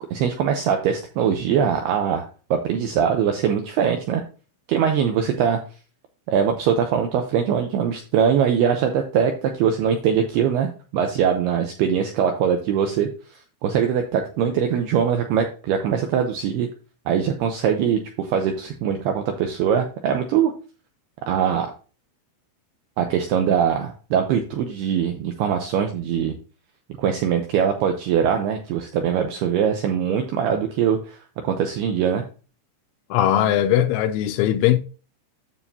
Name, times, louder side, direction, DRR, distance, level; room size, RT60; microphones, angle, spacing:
voice 1, 0.1-2.3 2.5-4.2 4.7-5.6 6.3-13.1 13.6-16.7 17.1-20.5 21.3-21.7 23.0-26.4 27.0-31.2 31.4-32.2, right 8 dB, 85° right, 2.3 m, -22 dB
voice 2, 33.1-34.8, left 11 dB, 85° left, 2.8 m, -19 dB
9.6 x 7.3 x 2.8 m
omnidirectional pair, 5.6 m